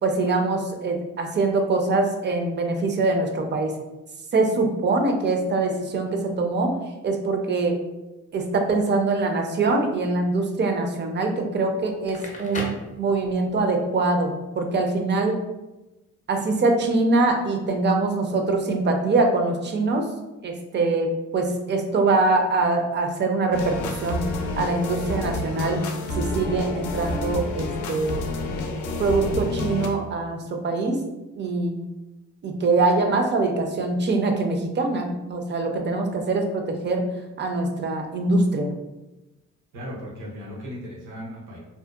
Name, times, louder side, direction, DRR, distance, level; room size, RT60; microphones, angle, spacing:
voice 1, 0.0-3.7 4.3-7.8 8.3-15.4 16.3-20.1 20.4-24.3 24.6-25.8 26.1-28.2 29.0-31.0 31.4-31.8 32.4-37.1 37.4-38.7, right 3 dB, 35° right, 4 dB, 0.4 m, -23 dB
Crackle, 11.9-13.6, left 2 dB, 25° left, 0.5 m, -36 dB
sound 1, 23.5-29.9, left 2 dB, 75° left, 0.5 m, -29 dB
voice 2, 39.7-41.6, equal, 90° right, -5 dB, 0.8 m, -36 dB
2.7 x 2.1 x 2.3 m, 1.0 s
cardioid pair, 90°, 30 cm